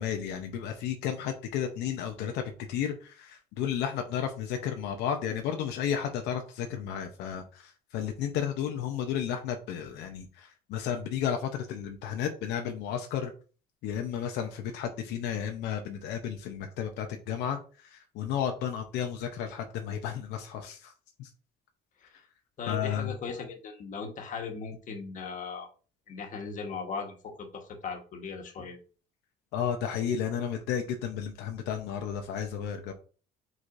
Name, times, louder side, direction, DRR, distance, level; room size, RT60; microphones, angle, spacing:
voice 1, 0.0-2.4 2.7-13.3 13.8-20.9 21.2-21.3 22.7-23.1 29.5-32.9, left 8 dB, 85° left, 4 dB, 0.7 m, -33 dB
voice 2, 22.6-25.7 26.1-28.8, left 5 dB, 50° left, 3 dB, 1.2 m, -38 dB
4.7 x 4.0 x 2.5 m, 0.37 s
cardioid pair, 110°, 17 cm